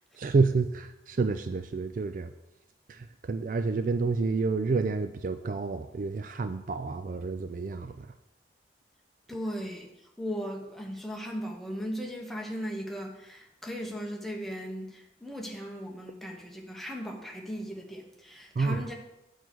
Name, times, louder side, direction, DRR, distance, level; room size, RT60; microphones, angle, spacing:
voice 1, 0.1-2.3 2.9-8.1 18.6-18.8, right 4 dB, 45° right, 9 dB, 0.3 m, -29 dB
voice 2, 9.3-18.9, equal, ahead, 0 dB, 1.1 m, -37 dB
9.0 x 4.5 x 6.3 m, 0.91 s
head